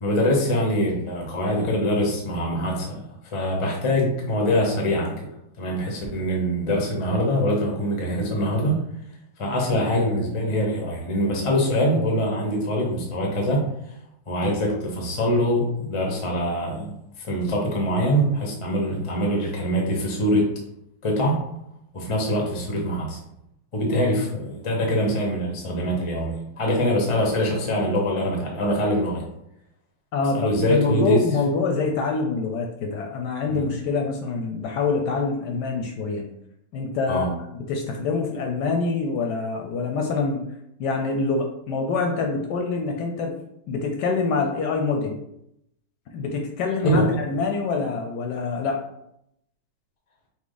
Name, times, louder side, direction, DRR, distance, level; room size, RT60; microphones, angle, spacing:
voice 1, 0.0-3.1 3.3-5.3 5.6-8.8 9.4-13.7 14.3-16.9 17.2-20.5 21.0-21.4 21.9-23.2 23.7-29.2 30.3-31.2 33.5-33.6 37.1-37.3 46.8-47.1, equal, 50° left, 0 dB, 0.3 m, -23 dB
voice 2, 30.1-36.3 36.7-37.4 37.7-40.4 40.8-43.3 43.7-45.2 46.1-48.8, left 4 dB, 70° left, 2 dB, 1.0 m, -25 dB
5.9 x 2.0 x 3.9 m, 0.77 s
omnidirectional pair, 2.2 m